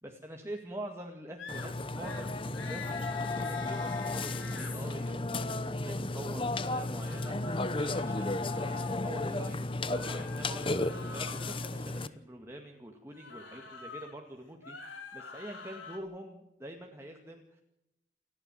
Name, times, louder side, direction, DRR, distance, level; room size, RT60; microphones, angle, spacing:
voice 1, 0.0-17.6, right 1 dB, 15° right, 2 dB, 2.0 m, -45 dB
sound 1, 1.4-1.7 2.0-2.3 2.5-4.7 6.8-9.0 9.9-11.7 13.1-14.1 14.5-16.0, left 4 dB, 90° left, 4.9 m, -46 dB
Burping eructation, 1.5-12.1, left 2 dB, 25° left, 0.8 m, -34 dB
29.0 x 11.0 x 9.0 m, 0.86 s
head